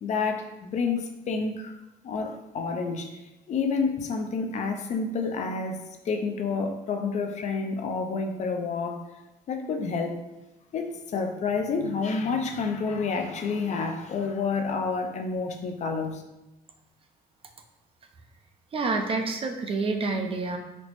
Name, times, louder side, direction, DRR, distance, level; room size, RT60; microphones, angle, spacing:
voice 1, 0.0-1.7 2.0-3.2 3.5-9.1 9.5-10.2 10.7-16.2, left 4 dB, 45° left, 4 dB, 0.4 m, -29 dB
voice 2, 18.7-20.6, right 3 dB, 35° right, 4 dB, 0.4 m, -28 dB
4.2 x 2.0 x 2.9 m, 1.0 s
cardioid pair, 110°, 17 cm